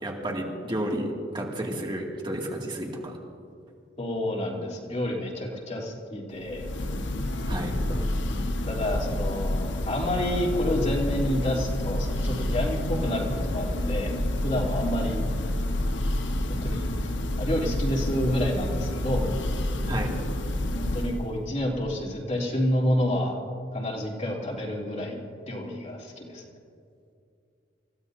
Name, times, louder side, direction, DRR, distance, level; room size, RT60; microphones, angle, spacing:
voice 1, 0.0-3.1 7.5-7.8 19.9-20.1, right 1 dB, 25° right, -1 dB, 2.3 m, -31 dB
voice 2, 4.0-6.7 8.6-14.2 14.4-15.2 16.6-17.1 17.4-19.3 20.7-23.4 23.7-26.4, left 1 dB, 40° left, -2 dB, 3.2 m, -29 dB
Church bell, 6.4-21.4, left 1 dB, 80° left, 1.1 m, -29 dB
29.0 x 16.0 x 2.7 m, 2.5 s
head